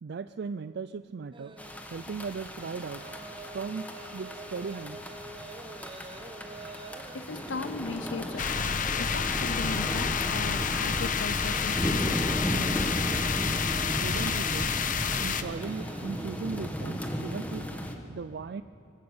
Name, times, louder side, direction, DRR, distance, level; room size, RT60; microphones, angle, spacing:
voice 1, 0.0-1.6 1.9-3.0 3.4-5.2 14.0-14.7 15.2-17.7 18.1-18.6, right 5 dB, 60° right, 12 dB, 0.4 m, -37 dB
sound 1, 1.3-16.7, right 2 dB, 25° right, 0.9 m, -48 dB
sound 2, 1.6-18.0, equal, 10° left, 1.5 m, -35 dB
voice 2, 7.1-12.2, left 4 dB, 75° left, 14 dB, 0.8 m, -38 dB
sound 3, 8.4-15.4, left 6 dB, 45° left, 0.9 m, -29 dB
25.0 x 16.0 x 7.9 m, 2.7 s
head